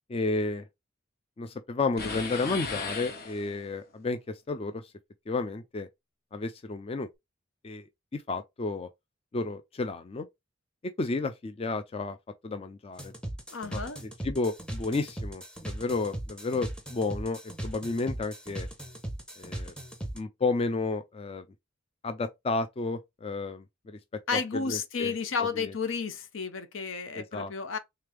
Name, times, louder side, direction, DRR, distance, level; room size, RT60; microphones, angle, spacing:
voice 1, 0.1-0.7 1.4-4.9 5.3-5.9 6.3-7.1 7.6-7.9 8.1-8.9 9.3-10.3 10.8-12.2 12.4-13.1 13.7-18.7 19.4-19.7 20.1-21.4 22.0-24.0 24.3-25.1 25.4-25.7 27.1-27.5, left 3 dB, 30° left, 0.4 m, -32 dB
sound 1, 2.0-3.8, left 4 dB, 50° left, 1.0 m, -36 dB
sound 2, 13.0-20.2, right 1 dB, 5° left, 0.7 m, -38 dB
voice 2, 13.5-14.0 24.3-27.8, left 5 dB, 75° left, 0.7 m, -32 dB
3.3 x 3.3 x 3.4 m
head